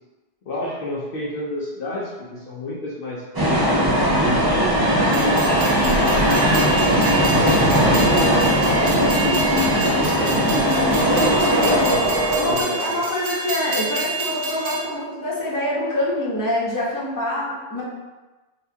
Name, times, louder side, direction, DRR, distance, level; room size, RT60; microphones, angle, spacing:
voice 1, 0.4-3.2 3.8-5.6 6.4-10.9 11.5-13.0, left 1 dB, 60° left, -6 dB, 0.8 m, -31 dB
sound 1, 3.3-12.6, equal, 30° right, 0.4 m, -18 dB
Train, 5.1-14.8, right 3 dB, 75° right, 0.9 m, -29 dB
voice 2, 10.8-12.0 12.3-17.8, left 1 dB, 20° left, -7 dB, 0.8 m, -26 dB
4.1 x 2.4 x 2.7 m, 1.2 s
omnidirectional pair, 1.1 m